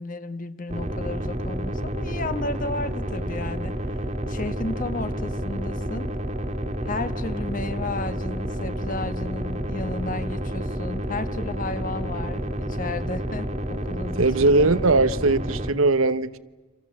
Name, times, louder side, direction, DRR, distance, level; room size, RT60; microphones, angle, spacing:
voice 1, 0.0-3.7 4.3-6.1 6.8-14.7, left 2 dB, 40° left, 1.4 m, -33 dB
sound 1, 0.7-15.7, equal, 35° right, 2.0 m, -30 dB
voice 2, 14.2-16.4, right 3 dB, 80° right, 1.0 m, -20 dB
29.0 x 26.5 x 7.5 m
head